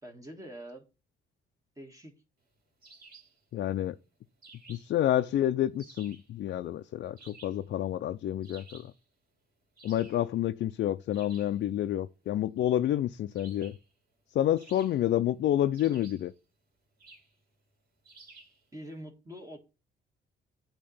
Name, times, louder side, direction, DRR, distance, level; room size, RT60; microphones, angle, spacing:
voice 1, 0.0-0.9 1.8-2.1 18.7-19.6, equal, 15° right, 1.5 m, -44 dB
sound 1, 2.8-3.4 4.4-5.0 5.8-6.3 7.2-7.7 8.4-9.0 9.7-10.3 11.1-11.6 13.3-13.9 14.6-15.2 15.7-16.3 17.0-17.3 18.0-18.6, right 3 dB, 50° right, 2.6 m, -54 dB
voice 2, 3.5-3.9 4.7-8.9 9.8-13.7 14.3-16.3, left 12 dB, 60° left, 0.4 m, -29 dB
8.5 x 2.9 x 5.5 m
cardioid pair, 90°, 20 cm